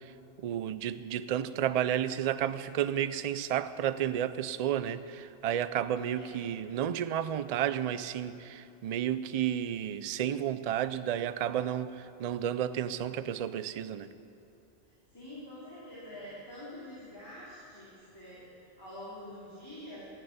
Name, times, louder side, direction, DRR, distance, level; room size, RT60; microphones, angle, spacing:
voice 1, 0.0-14.1, right 10 dB, 55° right, 0.4 m, -32 dB
voice 2, 14.8-20.1, left 1 dB, 20° left, 3.3 m, -46 dB
14.5 x 7.5 x 9.5 m
omnidirectional pair, 1.1 m